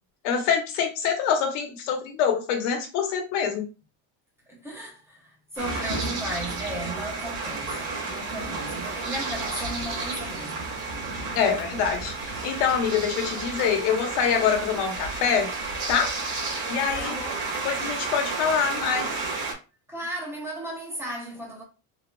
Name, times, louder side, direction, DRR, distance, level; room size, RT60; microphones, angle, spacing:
voice 1, 0.2-3.7 11.3-15.5 15.9-16.1 16.7-17.2 17.6-19.1, left 7 dB, 80° left, 1.1 m, -25 dB
voice 2, 4.5-10.7 17.0-17.4 19.9-21.6, right 1 dB, 5° right, 0.7 m, -36 dB
sound 1, 5.6-19.5, right 3 dB, 65° right, 1.8 m, -32 dB
3.8 x 2.8 x 2.2 m
cardioid pair, 160°, 40 cm